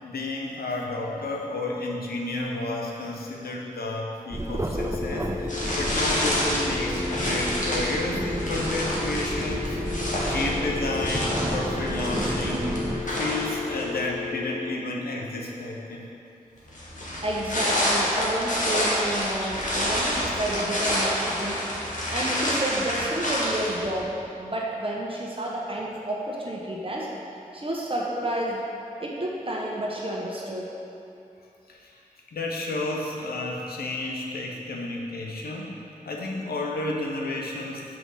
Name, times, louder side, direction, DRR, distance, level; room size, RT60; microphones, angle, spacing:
voice 1, 0.0-5.5 5.8-9.8 10.2-12.7 13.2-16.1 20.2-20.4 31.7-31.9 32.3-35.8 36.0-37.8, left 2 dB, 85° left, -1 dB, 1.0 m, -31 dB
sound 1, 4.3-13.0, right 1 dB, 20° right, 0.6 m, -31 dB
sound 2, 4.8-14.8, left 7 dB, 35° left, 0.4 m, -35 dB
sound 3, 5.5-14.1 16.7-24.0, equal, 55° left, 1.8 m, -28 dB
voice 2, 17.2-21.6 22.1-24.1 24.3-27.1 27.5-28.6 29.0-30.7, right 1 dB, 35° right, -3 dB, 1.2 m, -30 dB
5.9 x 5.3 x 6.3 m, 2.8 s
cardioid pair, 40°, 15 cm